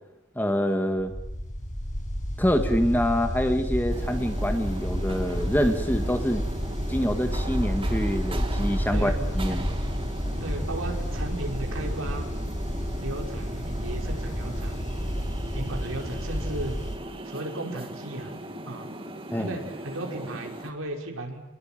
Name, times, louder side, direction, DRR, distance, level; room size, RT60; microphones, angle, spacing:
voice 1, 0.4-1.1 2.4-6.5 6.9-9.7 19.3-19.5, equal, 10° left, 7 dB, 1.9 m, -26 dB
sound 1, 1.0-17.0, equal, 35° left, 6.0 m, -30 dB
sound 2, 3.9-20.7, right 1 dB, 25° right, 2.5 m, -39 dB
voice 2, 10.4-12.3 13.0-14.8 15.5-16.7 17.2-18.4 18.7-18.9 19.4-21.4, right 1 dB, 75° right, 2 dB, 5.6 m, -35 dB
28.5 x 21.5 x 9.1 m, 0.86 s
head